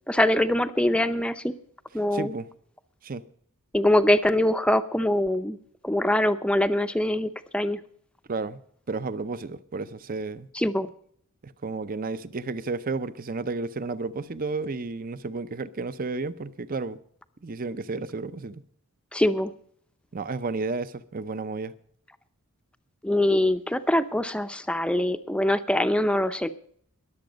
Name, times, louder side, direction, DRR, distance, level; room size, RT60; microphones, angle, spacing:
voice 1, 0.1-1.5 1.9-2.3 3.7-5.6 5.8-7.8 10.5-10.9 19.1-19.5 23.0-26.5, left 1 dB, 5° left, 0.5 m, -23 dB
voice 2, 2.1-2.5 3.0-3.2 8.3-8.6 8.9-10.5 11.4-17.0 17.4-18.6 20.1-21.7, right 3 dB, 40° right, 0.6 m, -32 dB
21.0 x 7.8 x 5.1 m
head